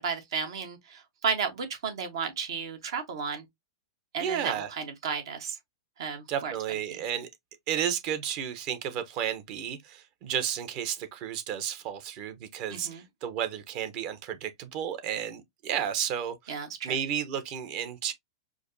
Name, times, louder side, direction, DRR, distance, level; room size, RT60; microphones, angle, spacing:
voice 1, 0.0-3.4 4.1-5.6 6.0-6.5 6.9-7.0 12.7-13.0 16.5-17.0, right 6 dB, 70° right, 1.1 m, -33 dB
voice 2, 4.2-4.7 6.3-7.3 7.7-16.6 16.8-18.1, right 9 dB, 45° right, 0.8 m, -32 dB
4.9 x 2.1 x 2.6 m
hypercardioid pair, 120°, 2 cm